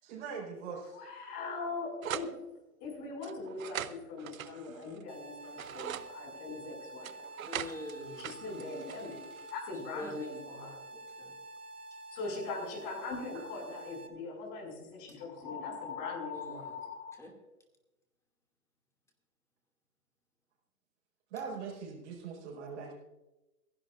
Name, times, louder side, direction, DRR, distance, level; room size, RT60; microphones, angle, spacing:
voice 1, 0.0-1.0 21.3-22.9, right 5 dB, 50° right, -4 dB, 4.9 m, -41 dB
voice 2, 0.9-2.3 2.8-7.2 8.2-9.2 9.5-10.8 12.1-17.2, left 3 dB, 35° left, -1 dB, 5.7 m, -41 dB
sound 1, 2.0-2.3 3.2-5.0 5.4-6.1 7.0-9.5, right 11 dB, 65° right, 0.8 m, -41 dB
sound 2, 5.1-14.1, right 2 dB, 85° right, 1.9 m, -48 dB
voice 3, 7.5-8.4 9.9-11.3 15.1-15.2 16.3-16.7 17.2-17.3, left 1 dB, 5° left, 1 dB, 2.3 m, -45 dB
28.0 x 11.0 x 2.5 m, 1.0 s
hypercardioid pair, 125°, 45 cm